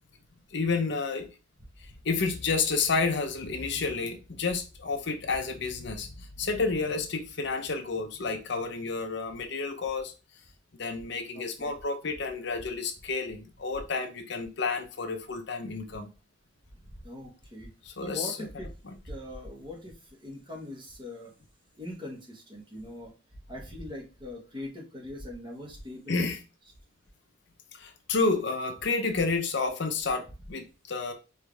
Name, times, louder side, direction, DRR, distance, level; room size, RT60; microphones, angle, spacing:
voice 1, 0.5-1.3 1.8-10.1 10.8-16.1 17.8-18.4 26.1-26.4 27.7-31.1, left 4 dB, 60° left, 0.7 m, -30 dB
voice 2, 11.3-11.7 16.8-17.7 18.0-18.7 19.1-21.3 21.8-23.1 23.5-26.3, left 1 dB, 25° right, 1.3 m, -41 dB
4.7 x 3.2 x 3.4 m
head